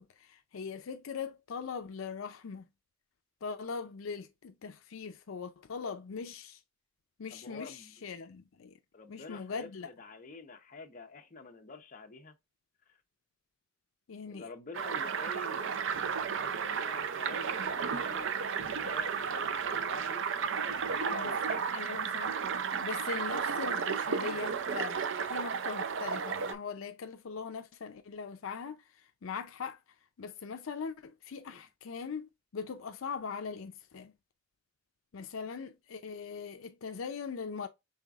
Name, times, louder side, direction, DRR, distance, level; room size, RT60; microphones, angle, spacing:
voice 1, 0.0-2.7 3.4-6.6 7.2-8.7 9.1-9.9 14.1-14.5 21.1-22.4 22.8-29.8 30.2-34.1 35.1-37.7, left 5 dB, 80° left, 0.5 m, -41 dB
voice 2, 7.3-8.0 8.9-12.3 12.9-13.0 14.3-15.7 16.1-18.3 18.6-21.8 22.7-22.8 31.5-31.6, left 3 dB, 40° left, 0.8 m, -48 dB
sound 1, 14.7-26.5, right 6 dB, 65° right, 0.5 m, -33 dB
5.7 x 3.4 x 2.4 m
head